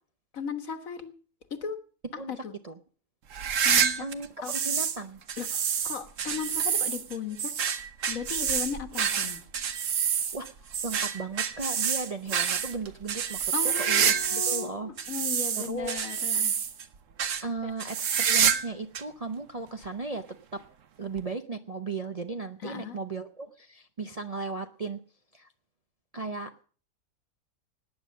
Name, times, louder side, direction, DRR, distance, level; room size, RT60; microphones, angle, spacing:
voice 1, 0.3-1.1 1.5-1.8 2.1-2.5 3.6-4.1 4.4-4.5 5.4-7.5 8.1-9.4 13.5-16.5 17.6-17.7 22.6-23.0, left 7 dB, 65° left, 9 dB, 1.8 m, -36 dB
sound 1, 3.3-5.0 5.3-14.7 15.0-16.8 17.2-17.4 17.8-18.7 18.9-19.0 19.8-19.9 21.2-21.3, right 8 dB, 60° right, 1.3 m, -27 dB
voice 2, 4.0-5.2 10.3-14.9 15.6-16.0 17.4-20.2 20.5-20.6 21.0-25.0 25.3-25.5 26.1-26.5, right 3 dB, 35° right, 6 dB, 0.6 m, -36 dB
18.5 x 9.4 x 6.4 m, 0.42 s
omnidirectional pair, 1.6 m